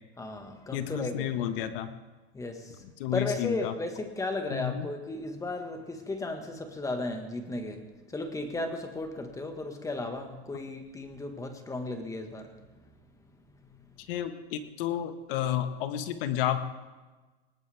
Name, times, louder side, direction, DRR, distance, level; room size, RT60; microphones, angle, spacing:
voice 1, 0.2-1.5 2.3-2.8 3.1-12.5, left 2 dB, 10° left, 6 dB, 1.6 m, -35 dB
voice 2, 0.7-1.9 3.0-3.7 4.5-4.9 14.1-16.6, left 11 dB, 55° left, 9 dB, 1.6 m, -31 dB
19.0 x 19.0 x 3.5 m, 1.3 s
supercardioid pair, 135°, 32 cm